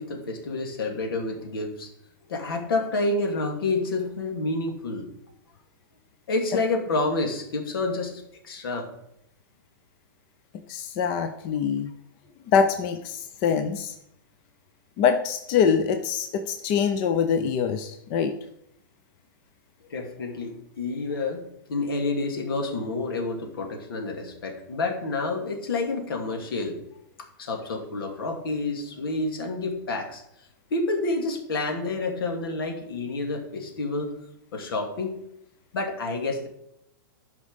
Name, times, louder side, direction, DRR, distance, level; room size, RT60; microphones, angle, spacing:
voice 1, 0.0-1.9 2.3-5.1 6.3-8.9 19.9-26.8 27.4-30.2 30.7-34.1 34.5-35.2 35.7-36.5, left 3 dB, 80° left, 3 dB, 2.6 m, -29 dB
voice 2, 10.7-11.9 12.5-14.0 15.0-18.3, left 6 dB, 30° left, 7 dB, 0.6 m, -24 dB
12.0 x 5.3 x 5.2 m, 0.79 s
hypercardioid pair, 165°, 12 cm